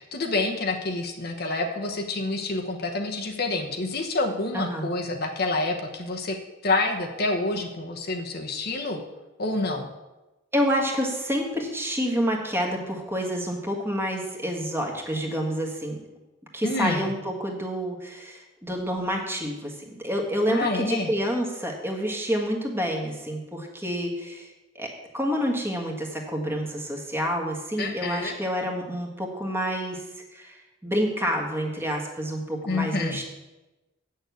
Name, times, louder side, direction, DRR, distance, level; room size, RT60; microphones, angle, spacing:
voice 1, 0.0-6.4 6.6-9.0 9.4-9.9 16.6-17.1 20.5-21.1 27.8-28.4 32.6-33.2, left 2 dB, 50° left, 3 dB, 1.0 m, -28 dB
voice 2, 4.5-4.9 10.5-16.0 16.5-30.0 30.3-33.2, equal, 10° right, 1 dB, 1.5 m, -28 dB
7.9 x 6.6 x 8.2 m, 1.1 s
head